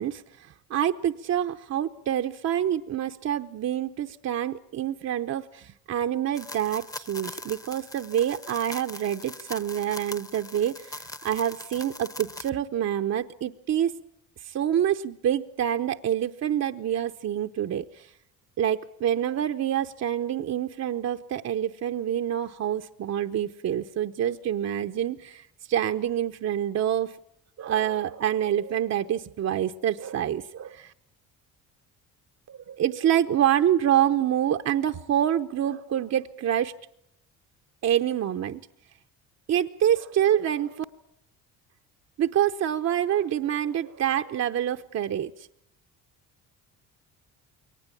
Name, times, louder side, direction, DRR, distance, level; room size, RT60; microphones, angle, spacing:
voice 1, 0.0-13.9 14.4-18.1 18.6-27.2 27.6-30.9 32.5-36.7 37.8-38.6 39.5-40.8 42.2-45.5, right 10 dB, 50° right, 7 dB, 0.8 m, -27 dB
sound 1, 6.3-12.5, left 2 dB, 10° left, 0.9 m, -41 dB
22.5 x 19.0 x 8.5 m, 0.75 s
supercardioid pair, 80°, 34 cm